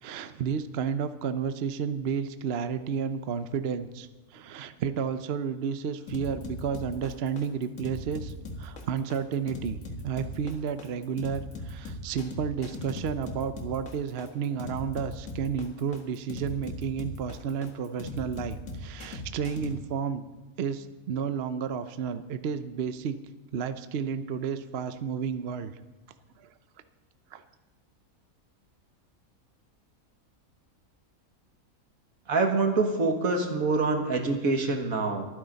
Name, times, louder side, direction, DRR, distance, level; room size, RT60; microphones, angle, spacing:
voice 1, 0.0-9.8 10.0-20.2 20.6-23.2 23.5-25.7 27.3-27.4, right 7 dB, 55° right, 11 dB, 0.8 m, -32 dB
sound 1, 6.1-19.7, left 2 dB, 65° left, 2.1 m, -39 dB
voice 2, 32.3-35.3, right 3 dB, 75° right, 4 dB, 2.0 m, -25 dB
23.5 x 9.8 x 4.0 m, 1.2 s
omnidirectional pair, 1.5 m